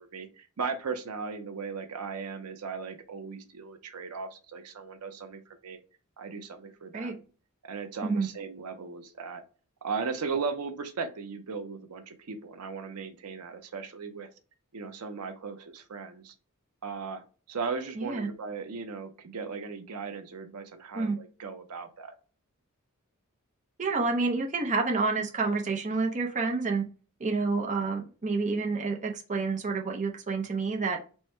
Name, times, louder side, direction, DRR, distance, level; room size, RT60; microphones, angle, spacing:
voice 1, 0.0-5.8 6.2-7.2 7.6-9.4 9.8-14.3 14.7-16.3 16.8-22.1, right 5 dB, 85° right, 7 dB, 0.6 m, -37 dB
voice 2, 18.0-18.3 20.9-21.2 23.8-26.9 27.2-31.0, right 3 dB, 35° right, 2 dB, 0.6 m, -29 dB
4.5 x 2.2 x 4.4 m, 0.36 s
head